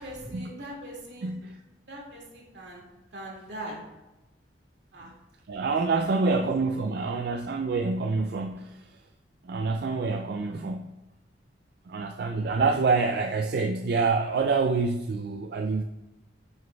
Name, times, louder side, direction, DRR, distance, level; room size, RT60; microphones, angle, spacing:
voice 1, 0.0-1.3 1.9-3.8 4.9-5.1 6.0-6.4 6.7-7.0, right 1 dB, 85° right, -2 dB, 2.2 m, -41 dB
voice 2, 1.2-1.6 5.0-5.1 5.5-8.9 9.4-11.0 11.9-15.8, right 4 dB, 60° right, 5 dB, 0.4 m, -27 dB
8.9 x 6.4 x 2.3 m, 1.0 s
head